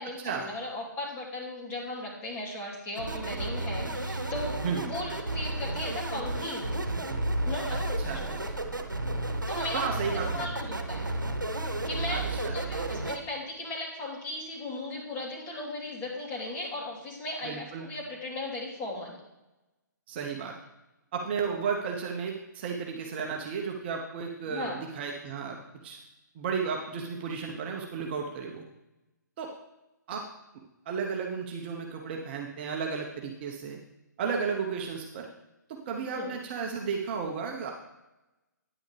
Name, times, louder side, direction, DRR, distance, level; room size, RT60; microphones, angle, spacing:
voice 1, 0.0-6.8 7.5-8.5 9.5-11.1 11.8-19.2 24.5-24.8 36.1-36.4, left 2 dB, 20° left, -3 dB, 2.7 m, -37 dB
sound 1, 3.0-13.2, right 2 dB, 90° right, 1.0 m, -32 dB
voice 2, 8.0-8.4 9.7-10.5 12.1-12.6 17.4-17.9 20.1-20.6 21.1-26.0 26.3-28.6 29.4-29.5 30.1-30.2 30.9-33.8 34.2-35.3 35.7-37.7, right 5 dB, 35° right, 1 dB, 1.0 m, -33 dB
9.7 x 9.6 x 3.4 m, 0.97 s
figure-of-eight pair, 135°, 10 cm